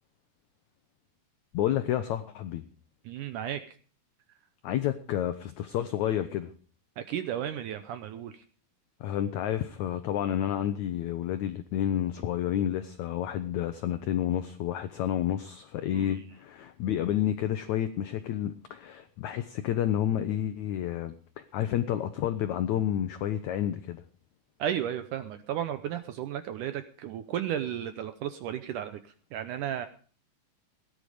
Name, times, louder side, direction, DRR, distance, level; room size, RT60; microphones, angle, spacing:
voice 1, 1.5-2.6 4.6-6.5 9.0-21.1 21.5-24.0, left 11 dB, 90° left, 1.6 m, -30 dB
voice 2, 3.1-3.8 7.0-8.4 15.9-16.2 24.6-29.0 29.3-29.9, right 10 dB, 80° right, 1.9 m, -34 dB
17.0 x 11.0 x 4.9 m
omnidirectional pair, 4.4 m